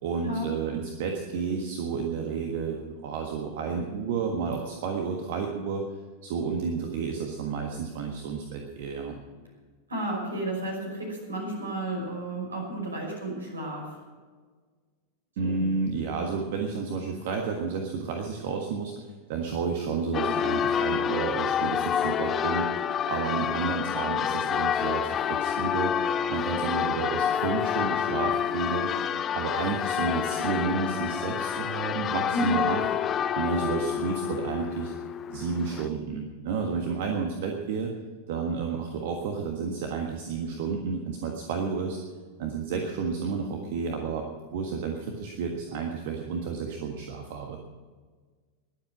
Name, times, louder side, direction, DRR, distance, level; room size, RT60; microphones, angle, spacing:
voice 1, 0.0-5.8 6.2-9.2 15.4-22.7 23.1-25.9 26.3-28.9 29.3-32.8 33.3-34.9 35.3-37.9 38.3-42.0 42.4-44.3 44.5-47.6, right 5 dB, 50° right, 2 dB, 1.5 m, -31 dB
voice 2, 9.9-13.8 15.4-15.6 32.3-32.6, right 1 dB, 75° right, 0 dB, 5.7 m, -32 dB
Church bell, 20.1-35.9, left 9 dB, 25° left, 0.6 m, -28 dB
21.0 x 8.1 x 6.2 m, 1.5 s
figure-of-eight pair, 90°, 0 cm